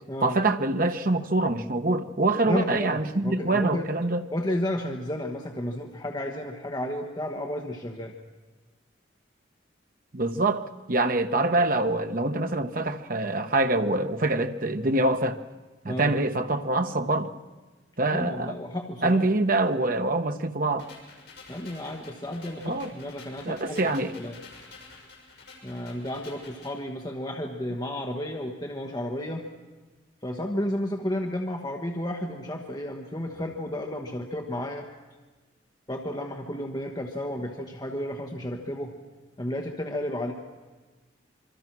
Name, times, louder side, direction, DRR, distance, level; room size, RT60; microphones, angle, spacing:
voice 1, 0.2-4.2 10.1-15.4 15.8-17.3 18.0-18.5 19.0-20.9 22.6-22.9 23.5-24.1, right 2 dB, 45° right, 1.0 m, -25 dB
voice 2, 2.5-3.9 4.3-8.1 15.8-16.1 18.1-19.2 21.5-23.9 24.2-24.3 25.6-29.5 30.2-34.9 35.9-38.9 39.4-40.3, left 1 dB, 20° left, 1.3 m, -32 dB
sound 1, 20.8-26.8, left 4 dB, 70° left, 6.3 m, -49 dB
26.0 x 24.0 x 6.1 m
head